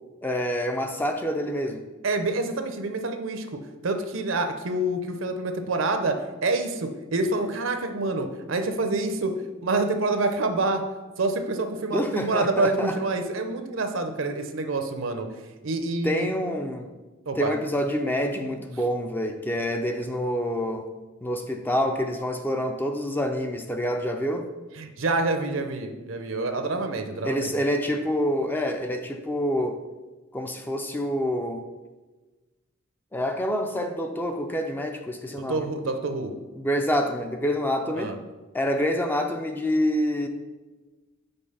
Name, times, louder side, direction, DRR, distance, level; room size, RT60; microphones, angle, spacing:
voice 1, 0.2-1.8 11.9-13.0 16.0-16.9 17.4-20.9 21.2-24.5 27.2-29.8 30.3-31.7 33.1-35.7 36.6-38.2 38.5-40.3, equal, 10° left, 4 dB, 0.4 m, -27 dB
voice 2, 2.0-6.2 6.4-9.3 9.6-10.8 11.2-15.3 15.6-16.3 17.3-17.5 24.8-27.5 35.4-36.3 37.9-38.2, right 2 dB, 70° right, 6 dB, 0.7 m, -27 dB
5.3 x 4.1 x 5.5 m, 1.2 s
head